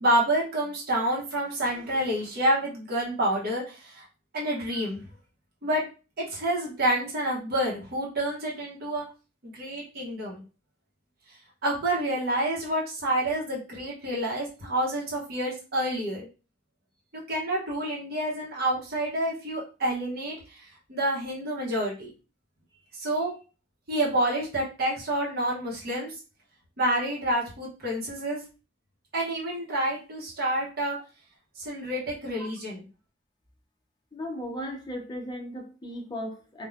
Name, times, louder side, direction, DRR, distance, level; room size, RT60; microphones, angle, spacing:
voice 1, 0.0-4.1 4.3-5.0 5.6-5.8 6.2-9.0 9.4-10.4 11.6-16.3 17.1-22.1 22.9-23.3 23.9-26.1 26.8-28.4 29.1-31.0 31.6-32.8, right 1 dB, 55° right, -4 dB, 0.8 m, -28 dB
voice 2, 34.1-36.7, equal, 25° left, 1 dB, 0.6 m, -36 dB
3.0 x 2.1 x 2.4 m, 0.34 s
head